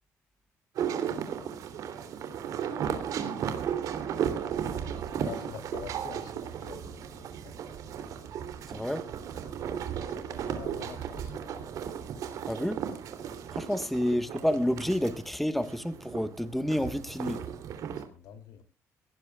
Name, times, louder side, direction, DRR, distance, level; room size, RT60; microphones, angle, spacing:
sound 1, 0.7-15.3 15.6-18.0, right 8 dB, 75° right, 3.0 m, -35 dB
voice 1, 4.9-7.7 10.1-11.6 18.0-18.6, left 7 dB, 85° left, 2.9 m, -46 dB
voice 2, 8.7-9.1 12.5-12.9 13.5-17.4, equal, ahead, 1.3 m, -29 dB
22.0 x 17.5 x 2.3 m
cardioid pair, 105°, 6 cm